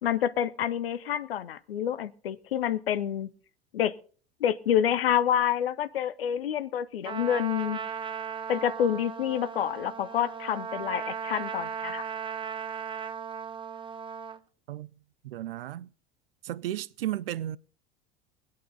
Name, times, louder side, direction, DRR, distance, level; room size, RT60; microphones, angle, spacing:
voice 1, 0.0-3.3 3.7-3.9 4.4-7.8 8.5-12.1, left 10 dB, 65° left, 0.9 m, -28 dB
Trumpet, 7.0-14.4, right 7 dB, 15° right, 0.7 m, -36 dB
voice 2, 15.2-15.9 16.4-17.6, right 13 dB, 65° right, 0.6 m, -34 dB
22.0 x 8.5 x 4.0 m
figure-of-eight pair, 75°, 31 cm